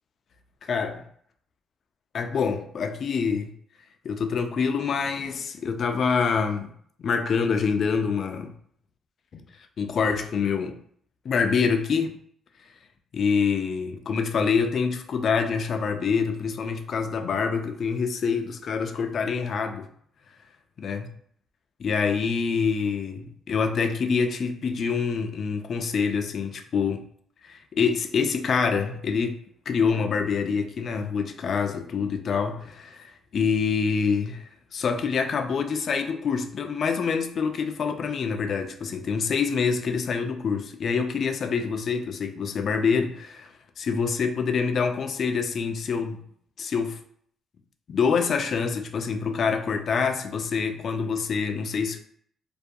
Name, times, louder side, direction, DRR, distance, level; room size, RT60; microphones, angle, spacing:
voice 1, 0.6-1.0 2.1-3.5 4.0-6.7 7.0-8.5 9.3-9.4 9.8-10.8 11.2-12.2 13.1-19.9 20.8-21.1 21.8-27.0 27.4-34.4 34.7-46.2 46.6-47.0 47.9-52.0, left 5 dB, 55° left, 0.3 m, -26 dB
2.3 x 2.2 x 2.6 m
cardioid pair, 90°, 0 cm